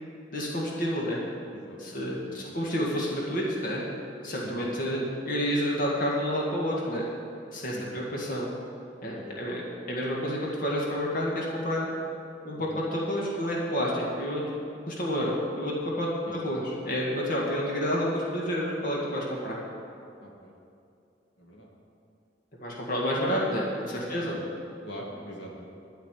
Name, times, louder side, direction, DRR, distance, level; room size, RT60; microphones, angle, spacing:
voice 1, 0.3-1.2 1.8-3.8 4.2-7.1 7.5-8.5 9.0-9.6 9.9-11.9 12.5-14.4 14.9-19.6 22.6-24.4, equal, 50° left, -4 dB, 1.9 m, -29 dB
voice 2, 1.7-2.6 4.4-4.7 7.7-8.3 9.1-9.4 12.6-12.8 16.2-16.4 20.2-20.5 21.4-21.7 24.1-24.5 24.8-25.6, equal, 75° left, -3 dB, 2.0 m, -44 dB
12.0 x 5.8 x 9.0 m, 2.5 s
head